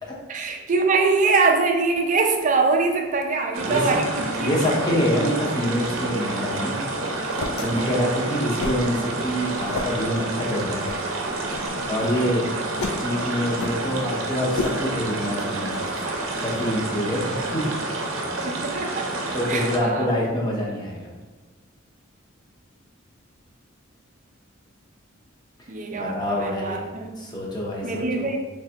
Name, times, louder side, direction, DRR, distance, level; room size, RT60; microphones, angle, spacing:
voice 1, 0.3-4.5 7.6-8.0 18.4-19.1 19.5-20.1 25.7-27.1 27.8-28.4, right 4 dB, 40° right, 3 dB, 0.4 m, -23 dB
sound 1, 3.5-19.8, right 2 dB, 80° right, 0.6 m, -29 dB
voice 2, 4.4-6.8 7.2-10.9 11.8-12.4 13.0-15.8 16.4-18.0 19.3-21.1 25.9-26.9 27.2-28.3, equal, 20° left, -3 dB, 0.7 m, -26 dB
sound 2, 6.2-17.0, left 3 dB, 85° left, 0.4 m, -36 dB
3.3 x 3.2 x 2.8 m, 1.3 s
head